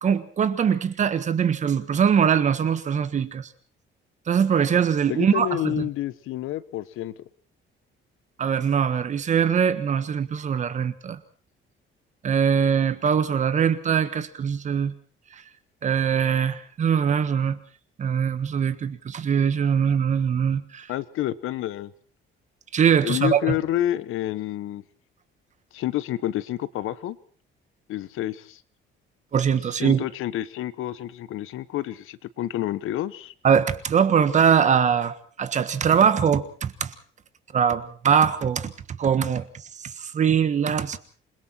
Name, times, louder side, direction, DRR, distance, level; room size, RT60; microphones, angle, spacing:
voice 1, 0.0-3.5 4.3-5.9 8.4-11.2 12.2-14.9 15.8-17.6 18.0-20.9 22.7-23.5 29.3-30.0 33.4-36.9 37.5-39.5 39.8-41.0, right 7 dB, 35° right, 1.5 m, -22 dB
voice 2, 5.1-7.1 20.9-21.9 23.0-24.8 25.7-27.2 27.9-28.6 29.8-33.3, left 13 dB, 75° left, 1.2 m, -29 dB
27.5 x 22.0 x 4.5 m
cardioid pair, 175°, 21 cm